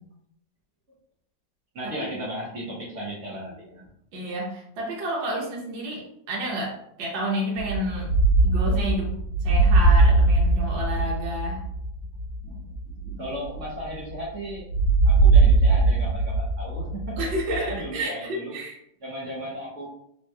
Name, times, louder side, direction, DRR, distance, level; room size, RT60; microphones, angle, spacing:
voice 1, 1.7-3.9 12.4-14.7 15.0-17.2 17.5-18.6 19.0-19.9, equal, 55° right, -4 dB, 0.9 m, -35 dB
voice 2, 4.1-8.1 8.4-9.1 9.4-11.6 17.2-18.8, right 1 dB, 75° right, -3 dB, 1.5 m, -30 dB
sound 1, 7.6-14.2 14.7-17.9, right 3 dB, 75° left, 1.1 m, -21 dB
3.4 x 2.8 x 2.3 m, 0.74 s
omnidirectional pair, 2.1 m